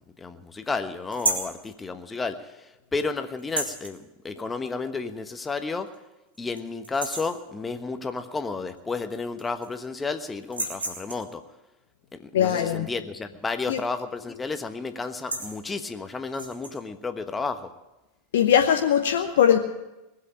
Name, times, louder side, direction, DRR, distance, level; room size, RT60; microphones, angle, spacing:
voice 1, 0.0-5.9 6.4-11.4 12.1-17.7, left 4 dB, 15° left, 9 dB, 1.2 m, -32 dB
sound 1, 1.1-1.6 3.4-3.9 5.3-5.4 5.9-6.0 6.3-6.6 6.8-7.4 8.8-8.9 9.1-9.8 10.4-11.3 13.7-14.0 14.3-14.6 15.0-15.6 16.3-16.7, right 2 dB, 85° right, 1.9 m, -31 dB
voice 2, 12.3-12.9 13.7-13.8 18.3-19.6, left 9 dB, 65° left, 5 dB, 0.9 m, -20 dB
19.5 x 8.0 x 8.6 m, 1.0 s
figure-of-eight pair, 85°, 0 cm